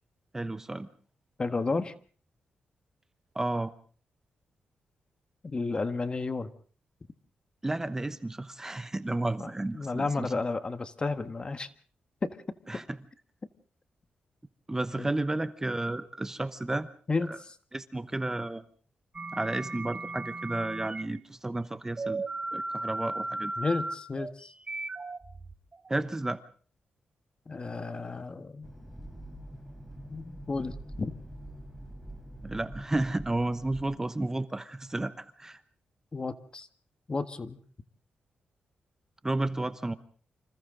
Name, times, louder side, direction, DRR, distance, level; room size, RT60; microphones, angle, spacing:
voice 1, 0.3-0.9 3.3-3.7 7.6-10.3 12.7-13.0 14.7-16.9 17.3-17.4 17.7-18.6 19.3-22.2 22.5-23.5 25.9-26.4 32.4-35.6 39.2-39.9, right 2 dB, 15° right, 12 dB, 0.9 m, -32 dB
voice 2, 1.4-1.9 5.4-6.5 9.4-11.7 12.2-12.4 15.0-15.1 17.1-17.3 23.6-24.5 27.5-28.7 30.1-31.1 36.1-36.7 37.1-37.6, left 3 dB, 30° left, 11 dB, 1.5 m, -32 dB
sound 1, 19.1-21.0 22.0-26.0, right 2 dB, 30° right, 1.6 m, -36 dB
sound 2, 28.6-33.8, right 1 dB, 5° left, 4.4 m, -45 dB
28.0 x 26.5 x 3.8 m, 0.43 s
cardioid pair, 110°, 3 cm